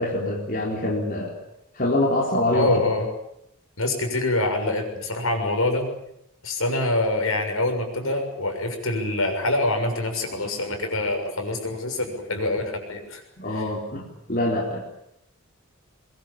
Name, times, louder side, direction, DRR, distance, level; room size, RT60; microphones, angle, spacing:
voice 1, 0.0-1.4 1.7-2.7 13.4-14.8, left 1 dB, 40° left, -1 dB, 4.2 m, -25 dB
voice 2, 2.5-3.1 3.8-5.9 6.4-13.2 13.5-13.6, left 2 dB, 70° left, 4 dB, 6.7 m, -25 dB
23.0 x 22.5 x 8.8 m, 0.78 s
head